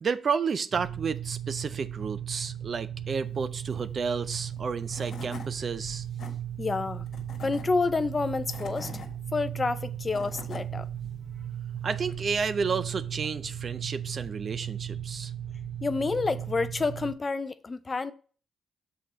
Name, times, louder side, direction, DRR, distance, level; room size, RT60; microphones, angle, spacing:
voice 1, 0.0-6.1 11.8-15.3, right 5 dB, 45° right, 0.5 m, -31 dB
sound 1, 0.7-17.1, right 9 dB, 90° right, 2.6 m, -37 dB
Tools / Wood, 4.6-4.7 4.9-5.5 6.0-6.3 7.1-7.6 8.3-9.1 9.8-10.6, left 5 dB, 60° left, 1.4 m, -43 dB
voice 2, 6.6-7.0 7.4-8.9 9.3-10.9 15.8-18.1, left 3 dB, 30° left, 0.5 m, -29 dB
6.3 x 4.4 x 5.0 m
cardioid pair, 90°, 0 cm